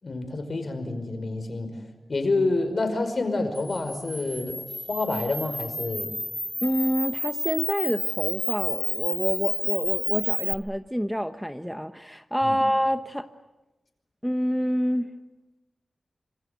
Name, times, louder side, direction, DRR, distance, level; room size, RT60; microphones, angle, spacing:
voice 1, 0.0-1.7 2.1-6.2 12.4-12.6, left 2 dB, 55° left, 8 dB, 5.2 m, -28 dB
Camera, 3.5-10.5, left 1 dB, 15° left, 2.8 m, -30 dB
voice 2, 6.6-13.3 14.2-15.1, equal, ahead, 8 dB, 1.0 m, -27 dB
27.0 x 26.5 x 8.2 m, 1.0 s
wide cardioid pair, 100°, 0 cm